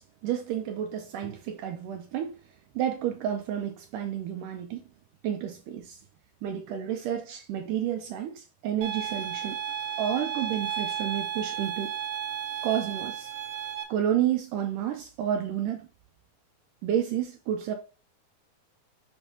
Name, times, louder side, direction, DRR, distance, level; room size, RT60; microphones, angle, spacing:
voice 1, 0.0-2.3 2.8-4.8 5.2-6.0 6.4-9.6 10.0-11.9 12.6-13.3 13.9-15.8 16.8-17.7, right 10 dB, 80° right, 1.9 m, -30 dB
sound 1, 8.8-13.8, right 9 dB, 55° right, 2.1 m, -33 dB
7.1 x 5.4 x 2.7 m
omnidirectional pair, 4.4 m